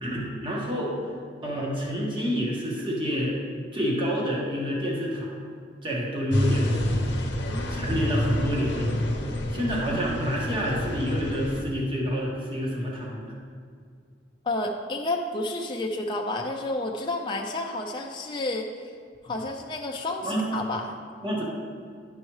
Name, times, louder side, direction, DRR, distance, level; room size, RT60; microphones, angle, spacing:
voice 1, 0.0-1.0 1.4-3.4 3.7-5.4 5.8-6.9 7.7-8.9 9.5-13.3 20.2-20.5 21.2-21.4, equal, 30° right, -4 dB, 1.5 m, -28 dB
sound 1, 6.3-11.6, left 1 dB, 75° left, 0.8 m, -28 dB
voice 2, 14.4-18.7 19.2-20.9, left 2 dB, 25° left, 0 dB, 0.4 m, -30 dB
10.5 x 5.4 x 3.2 m, 2.1 s
head